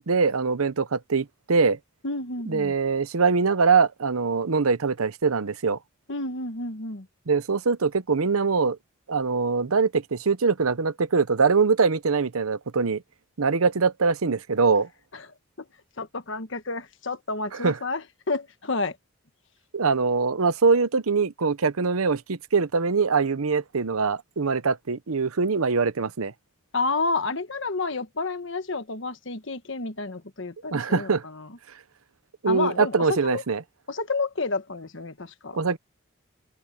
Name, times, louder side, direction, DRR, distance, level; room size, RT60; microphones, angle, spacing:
voice 1, 0.0-1.8 2.5-5.8 7.3-8.8 9.1-13.0 13.4-14.9 17.5-17.8 19.7-26.3 30.7-31.2 32.4-33.6 35.5-35.8, right 4 dB, 90° right, 0.8 m, -23 dB
voice 2, 2.0-2.7 6.1-7.1 15.1-15.2 16.0-19.0 26.7-31.5 32.5-33.4 33.9-35.8, left 3 dB, 60° left, 1.4 m, -30 dB
head